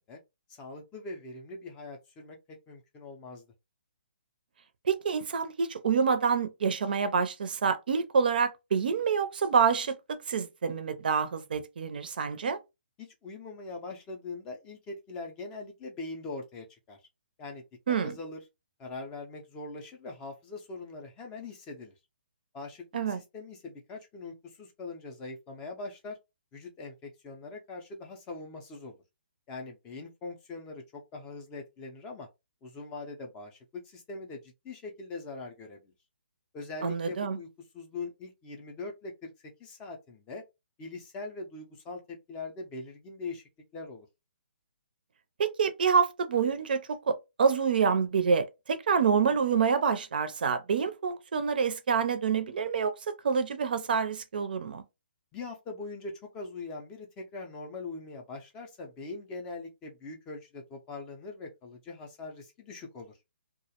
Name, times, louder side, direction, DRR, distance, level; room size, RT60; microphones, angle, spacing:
voice 1, 0.5-3.4 13.0-17.0 17.4-18.4 18.8-21.9 22.5-26.2 26.5-29.0 29.5-32.3 32.6-35.8 36.5-37.5 37.7-39.3 39.6-40.4 40.8-43.4 43.7-44.1 55.3-63.1, left 3 dB, 15° left, 0.4 m, -42 dB
voice 2, 4.9-12.6 17.9-18.1 22.9-23.2 36.8-37.4 45.4-52.9 53.2-54.8, right 6 dB, 55° right, 0.4 m, -27 dB
2.3 x 2.0 x 2.8 m
hypercardioid pair, 160°, 6 cm